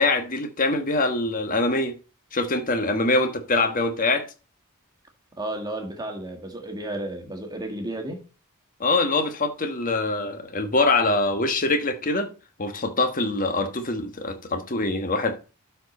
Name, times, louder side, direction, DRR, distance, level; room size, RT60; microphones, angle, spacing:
voice 1, 0.0-2.0 2.3-4.3 8.8-12.3 12.6-15.4, left 2 dB, 40° left, 1.3 m, -24 dB
voice 2, 5.4-8.2, right 1 dB, 20° right, 1.6 m, -32 dB
12.0 x 4.5 x 4.2 m
head